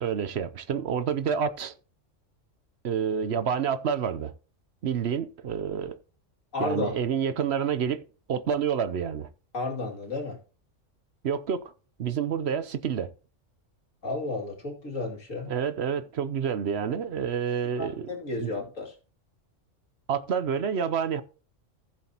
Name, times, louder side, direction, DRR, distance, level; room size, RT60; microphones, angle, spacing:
voice 1, 0.0-1.7 2.8-4.3 4.8-6.0 6.6-8.0 8.3-9.3 11.2-11.7 12.0-13.1 15.5-18.1 18.4-18.5 20.1-21.2, right 7 dB, 60° right, 0.9 m, -28 dB
voice 2, 6.5-7.0 9.5-10.4 14.0-15.5 17.8-18.9, left 3 dB, 85° left, 3.0 m, -32 dB
15.0 x 7.3 x 2.9 m
omnidirectional pair, 1.3 m